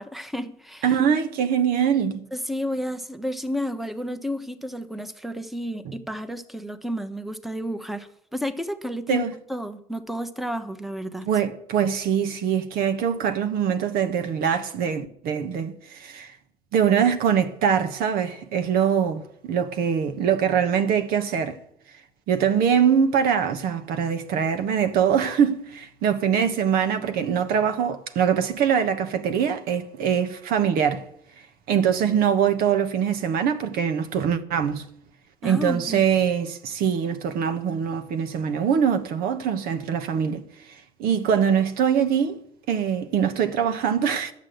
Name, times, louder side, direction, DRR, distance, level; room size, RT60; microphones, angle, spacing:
voice 1, 0.0-0.9 2.3-11.3 35.4-36.0, equal, ahead, 1.2 m, -31 dB
voice 2, 0.8-2.2 5.8-5.9 9.1-9.3 11.3-16.3 16.7-21.6 22.3-31.0 31.7-34.9 35.4-40.4 41.0-44.3, right 8 dB, 70° right, 1.2 m, -23 dB
11.0 x 7.4 x 7.9 m
hypercardioid pair, 65°, 16 cm